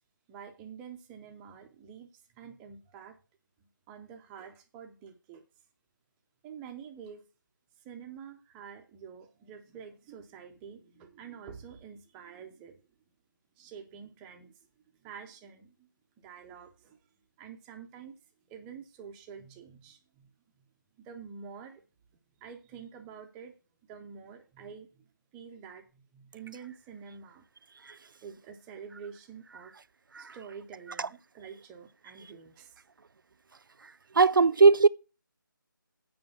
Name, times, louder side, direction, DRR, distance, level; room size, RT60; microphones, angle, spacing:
voice 1, 0.3-2.1 2.3-3.2 3.9-5.4 6.4-7.2 7.8-12.8 13.6-14.6 15.0-15.9 16.2-17.0 17.4-18.1 18.5-20.3 21.0-21.8 22.4-23.5 23.9-27.4 28.2-29.7 30.2-32.8, right 7 dB, 5° right, 0.4 m, -47 dB
voice 2, 34.1-34.9, right 4 dB, 75° right, 0.4 m, -20 dB
7.8 x 5.0 x 7.0 m
figure-of-eight pair, 160°, 11 cm